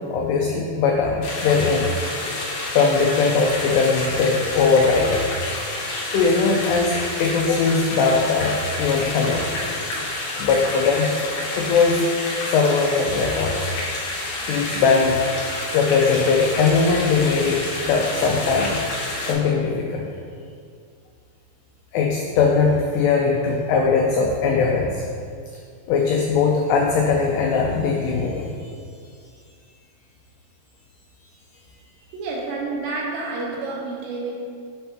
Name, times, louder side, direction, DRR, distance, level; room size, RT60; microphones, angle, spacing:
voice 1, 0.1-1.9 2.8-5.3 6.1-9.6 10.4-11.1 11.5-12.1 12.4-13.7 14.5-15.2 15.7-18.8 19.2-20.1 21.9-25.1 25.9-28.5, left 4 dB, 90° left, 0 dB, 2.3 m, -20 dB
sound 1, 1.2-19.3, left 2 dB, 70° left, 2.5 m, -29 dB
voice 2, 32.1-34.3, right 3 dB, 80° right, -3 dB, 2.9 m, -29 dB
7.5 x 5.3 x 2.9 m, 2.2 s
omnidirectional pair, 5.3 m